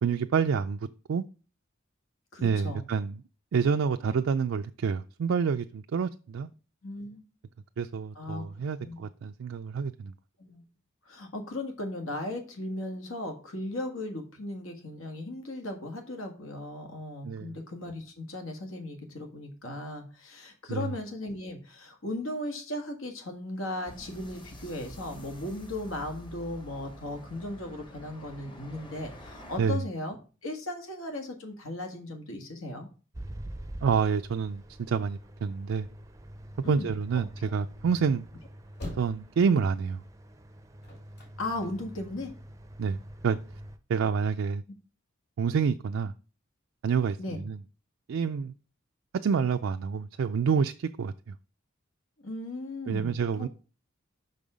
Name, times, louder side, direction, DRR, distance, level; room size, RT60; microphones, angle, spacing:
voice 1, 0.0-0.8 1.1-1.2 2.4-3.2 3.5-6.5 7.8-10.1 17.2-17.5 20.7-20.9 29.6-29.8 33.8-35.9 36.7-38.2 39.0-40.0 42.8-43.0 43.2-43.4 43.9-44.6 45.4-46.1 46.8-47.6 48.1-48.5 49.2-51.1 52.9-53.5, right 6 dB, 75° right, 0.4 m, -28 dB
voice 2, 2.3-2.9 6.8-7.2 8.1-8.4 8.8-9.0 10.4-10.6 11.0-30.2 30.4-32.9 36.6-36.9 41.4-42.3 47.2-47.4 52.2-53.5, left 1 dB, 85° left, 1.6 m, -37 dB
sound 1, 23.9-29.6, equal, 25° left, 0.9 m, -47 dB
sound 2, 33.1-43.8, right 1 dB, 15° right, 0.5 m, -46 dB
sound 3, 38.6-42.3 42.8-43.8, left 1 dB, 55° left, 3.2 m, -44 dB
6.1 x 5.4 x 5.0 m
head